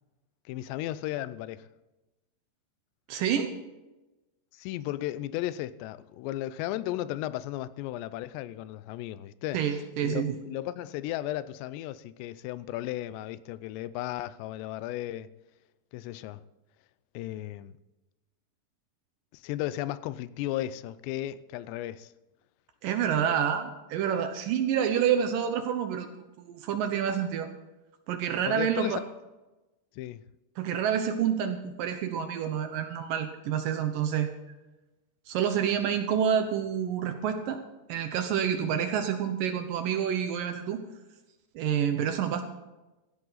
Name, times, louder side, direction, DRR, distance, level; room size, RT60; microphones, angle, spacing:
voice 1, 0.5-1.7 4.5-9.6 10.0-15.3 15.9-16.4 17.1-17.7 19.3-22.1 28.5-29.0 30.0-30.2, left 14 dB, 90° left, 2.8 m, -35 dB
voice 2, 3.1-3.5 9.5-10.4 22.8-26.1 26.4-27.5 28.1-29.0 30.6-34.3 35.3-37.6 37.9-40.8 41.6-42.4, right 8 dB, 75° right, 2.0 m, -28 dB
16.5 x 13.5 x 4.0 m
omnidirectional pair, 4.9 m